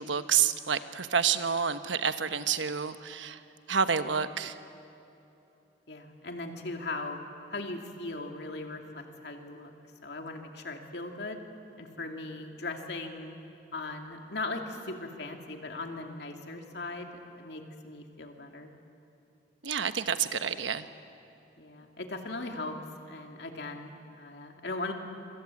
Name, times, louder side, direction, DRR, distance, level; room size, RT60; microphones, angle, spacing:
voice 1, 0.0-3.4 3.7-4.5 19.6-20.8, right 7 dB, 90° right, 10 dB, 1.1 m, -29 dB
voice 2, 5.9-7.2 7.5-9.7 10.0-11.4 11.8-13.3 13.7-17.1 17.4-18.7 21.6-22.8 23.1-24.9, left 2 dB, 65° left, 3 dB, 2.6 m, -38 dB
26.5 x 25.0 x 8.5 m, 2.8 s
head